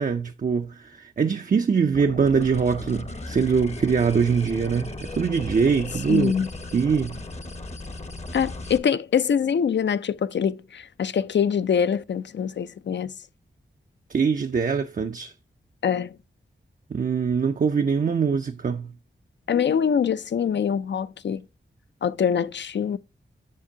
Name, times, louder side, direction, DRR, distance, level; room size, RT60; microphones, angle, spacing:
voice 1, 0.0-6.3 6.7-7.2 14.1-15.3 16.9-18.9, right 6 dB, 40° right, 0.4 m, -23 dB
sound 1, 1.9-8.8, left 2 dB, 35° left, 0.7 m, -36 dB
voice 2, 6.1-6.5 8.3-13.1 15.8-16.2 19.5-21.4 22.0-23.0, left 7 dB, 60° left, 0.4 m, -24 dB
7.4 x 6.7 x 2.7 m
cardioid pair, 50°, 21 cm